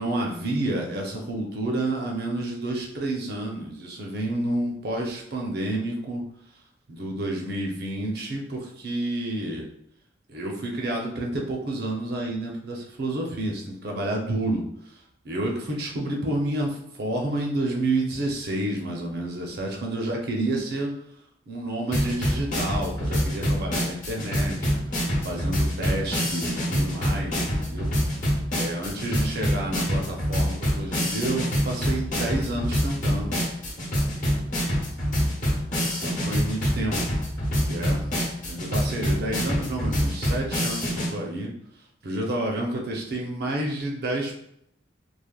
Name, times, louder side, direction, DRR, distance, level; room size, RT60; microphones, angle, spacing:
voice 1, 0.0-6.2 6.9-9.7 10.3-14.6 15.2-20.9 21.5-27.9 28.5-33.4 35.8-37.1 37.7-38.0 38.5-41.5 42.0-44.3, right 1 dB, 60° right, 0 dB, 0.6 m, -29 dB
sound 1, 21.9-41.1, equal, 45° left, 0.9 m, -26 dB
3.3 x 2.1 x 2.3 m, 0.73 s
head